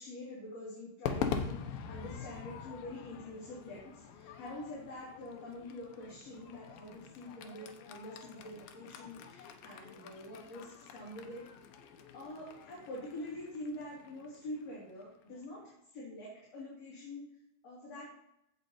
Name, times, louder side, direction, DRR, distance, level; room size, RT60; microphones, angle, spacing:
voice 1, 0.0-11.5 12.1-15.6 15.9-17.3 17.6-18.1, left 1 dB, 45° left, -6 dB, 3.7 m, -45 dB
Crowd / Fireworks, 1.0-15.4, left 6 dB, 75° left, 2.6 m, -44 dB
16.0 x 5.3 x 4.3 m, 0.83 s
omnidirectional pair, 4.4 m